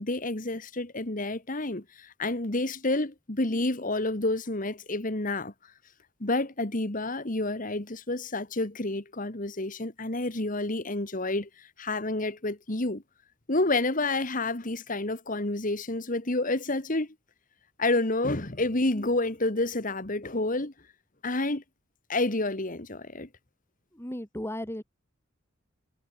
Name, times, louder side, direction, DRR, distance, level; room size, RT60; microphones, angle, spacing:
voice 1, 0.0-5.7 6.2-13.0 13.5-17.1 17.8-20.7 21.2-21.6 22.1-23.3, left 2 dB, 40° left, 1.9 m, -29 dB
voice 2, 23.9-24.8, left 1 dB, 10° left, 2.4 m, -35 dB
head